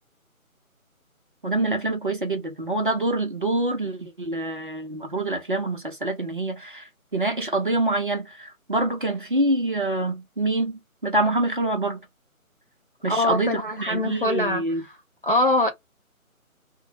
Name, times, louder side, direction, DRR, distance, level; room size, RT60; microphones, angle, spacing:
voice 1, 1.4-12.1 13.0-14.8, right 2 dB, 40° right, 0.6 m, -26 dB
voice 2, 13.1-14.6 15.2-15.7, left 1 dB, 40° left, 0.5 m, -23 dB
2.6 x 2.1 x 2.8 m
figure-of-eight pair, 155°, 43 cm